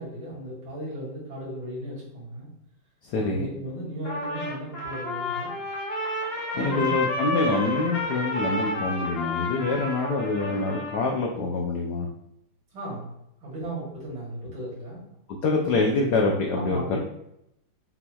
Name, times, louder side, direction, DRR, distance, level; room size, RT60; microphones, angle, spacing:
voice 1, 0.0-2.5 3.2-5.5 6.5-7.0 12.7-13.1 13.4-15.0 16.5-17.0, right 1 dB, 70° right, -5 dB, 2.5 m, -36 dB
voice 2, 3.0-3.5 6.6-12.1 15.3-17.0, left 3 dB, 75° left, 0 dB, 0.9 m, -26 dB
Trumpet, 4.0-11.2, left 1 dB, 60° left, 0.6 m, -30 dB
5.9 x 2.9 x 2.3 m, 0.79 s
omnidirectional pair, 2.3 m